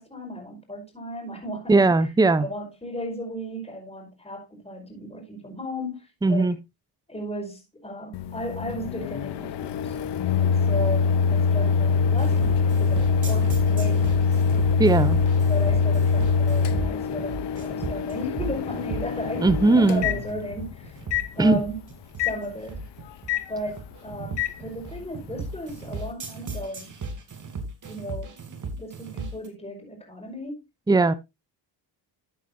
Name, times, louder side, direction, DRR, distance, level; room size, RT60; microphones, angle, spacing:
voice 1, 0.0-1.8 2.4-6.5 7.1-10.0 10.3-14.2 15.5-19.5 19.7-21.0 21.4-21.8 22.2-22.8 23.5-26.9 27.9-30.6, equal, 15° left, 5.3 m, -35 dB
voice 2, 1.7-2.5 6.2-6.6 14.8-15.2 19.4-20.0 21.4-21.7 30.9-31.1, right 3 dB, 10° right, 0.7 m, -19 dB
Microwave oven, 8.1-20.7 21.1-21.3 22.2-22.4 23.3-23.5 24.4-24.5, left 5 dB, 70° left, 1.0 m, -23 dB
sound 1, 12.2-29.5, right 3 dB, 45° right, 2.9 m, -36 dB
13.0 x 8.3 x 2.7 m
cardioid pair, 90°, 44 cm